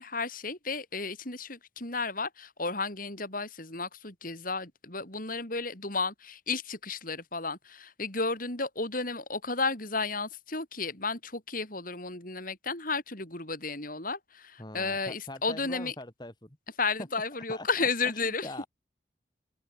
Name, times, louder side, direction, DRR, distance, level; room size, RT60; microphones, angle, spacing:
voice 1, 0.0-15.9 16.8-18.5, left 4 dB, 45° left, 5.7 m, -33 dB
voice 2, 14.6-16.6 17.5-18.7, left 1 dB, 20° left, 2.3 m, -43 dB
open air
head